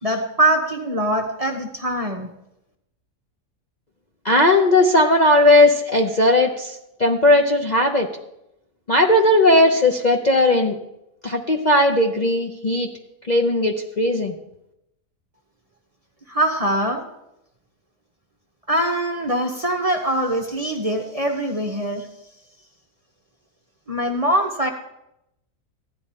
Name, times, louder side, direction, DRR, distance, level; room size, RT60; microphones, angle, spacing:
voice 1, 0.0-2.3 16.3-17.0 18.7-22.1 23.9-24.7, right 1 dB, 25° right, 3 dB, 0.9 m, -22 dB
voice 2, 4.2-8.1 8.9-10.8 11.2-12.9 13.3-14.4, left 1 dB, 35° left, 1 dB, 0.7 m, -17 dB
15.5 x 11.0 x 4.3 m, 0.84 s
omnidirectional pair, 1.6 m